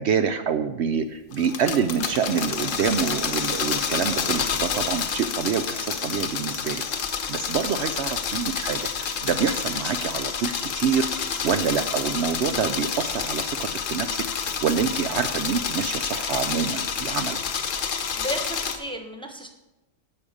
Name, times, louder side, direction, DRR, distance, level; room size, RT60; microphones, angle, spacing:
voice 1, 0.0-11.1 11.4-17.4, right 6 dB, 65° right, 8 dB, 0.8 m, -26 dB
sound 1, 1.3-18.8, left 6 dB, 75° left, 1.3 m, -29 dB
voice 2, 18.1-19.5, equal, 5° left, 4 dB, 1.0 m, -33 dB
11.5 x 5.1 x 8.5 m, 1.0 s
omnidirectional pair, 1.3 m